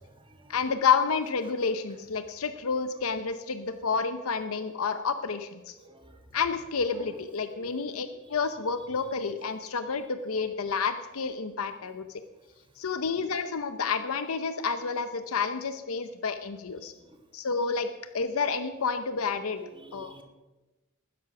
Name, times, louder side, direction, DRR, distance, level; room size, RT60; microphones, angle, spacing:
voice 1, 0.5-5.7 6.3-12.2 12.8-16.9 17.3-17.9 18.1-19.6 19.9-20.2, left 5 dB, 80° left, 10 dB, 0.7 m, -29 dB
voice 2, 5.7-6.2 7.0-7.1 7.5-7.8 19.6-20.2, right 2 dB, 25° right, 5 dB, 1.4 m, -50 dB
12.5 x 10.0 x 5.9 m, 1.1 s
head